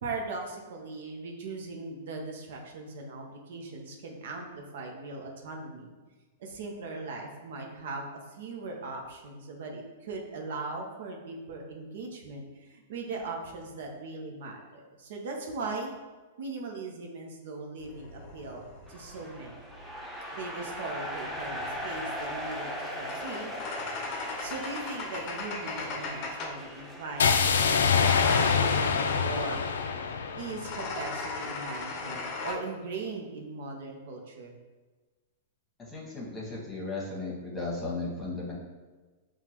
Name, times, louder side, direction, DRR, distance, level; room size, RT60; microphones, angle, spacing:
voice 1, 0.0-5.9 6.4-15.9 16.4-18.6 18.9-19.6 20.3-22.7 23.0-23.5 24.4-29.6 30.3-34.5, right 3 dB, 70° right, 1 dB, 0.7 m, -39 dB
sound 1, 17.8-19.9 21.1-26.7 27.8-29.3 30.4-32.5, left 3 dB, 40° left, 0.6 m, -38 dB
sound 2, 18.9-30.4, equal, 5° right, 0.6 m, -40 dB
sound 3, 27.2-31.2, left 6 dB, 85° left, 0.3 m, -25 dB
voice 2, 35.9-38.5, left 3 dB, 15° left, -5 dB, 1.3 m, -35 dB
6.0 x 2.3 x 2.9 m, 1.3 s
hypercardioid pair, 130°, 0 cm